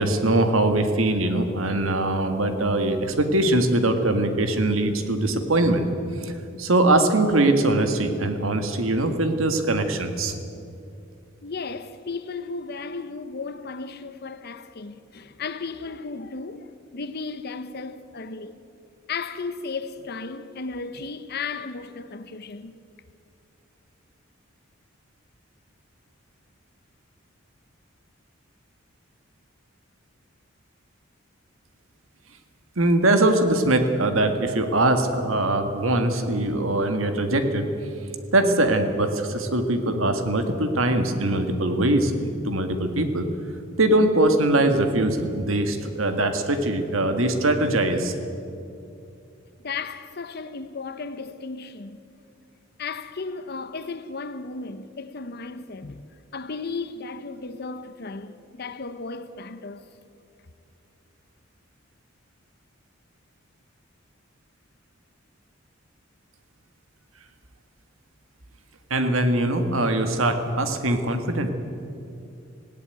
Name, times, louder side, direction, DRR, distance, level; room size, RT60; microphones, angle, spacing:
voice 1, 0.0-5.9 6.2-6.3 6.6-10.3 32.8-37.7 38.3-43.3 43.8-48.1 68.9-71.5, right 1 dB, 80° right, 1.8 m, -22 dB
voice 2, 11.4-18.6 19.1-22.7 49.6-52.0 52.8-59.8, left 4 dB, 50° left, 0.8 m, -35 dB
18.0 x 16.5 x 9.4 m
head